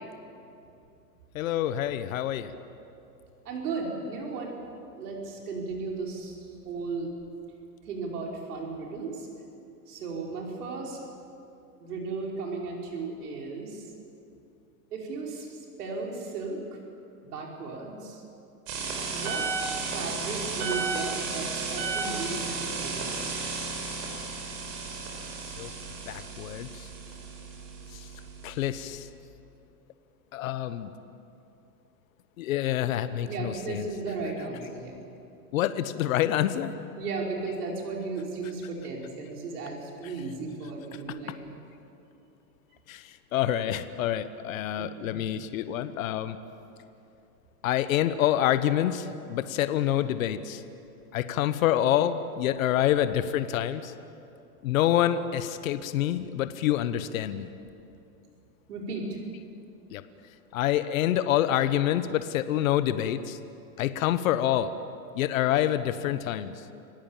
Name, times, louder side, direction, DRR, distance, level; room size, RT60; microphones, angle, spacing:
voice 1, 1.3-2.5 25.6-25.7 26.1-26.9 27.9-28.1 28.4-29.1 30.3-30.9 32.4-33.9 34.2-34.3 35.5-36.7 40.0-40.2 42.9-46.4 47.6-50.6 51.1-53.9 54.6-57.5 59.9-60.0 60.5-63.4 63.8-64.7 65.1-66.6, left 12 dB, 60° left, 12 dB, 1.2 m, -27 dB
voice 2, 3.5-4.5 4.9-6.4 6.7-7.1 7.9-9.3 9.9-11.0 11.8-13.8 14.9-16.8 17.2-18.2 19.1-19.5 19.9-23.3 33.2-35.0 37.0-41.6 44.7-45.1 58.7-59.2, right 3 dB, 75° right, -1 dB, 5.3 m, -35 dB
sound 1, 18.7-29.1, right 4 dB, 45° right, 4.8 m, -34 dB
26.5 x 17.0 x 7.4 m, 2.6 s
supercardioid pair, 160°, 46 cm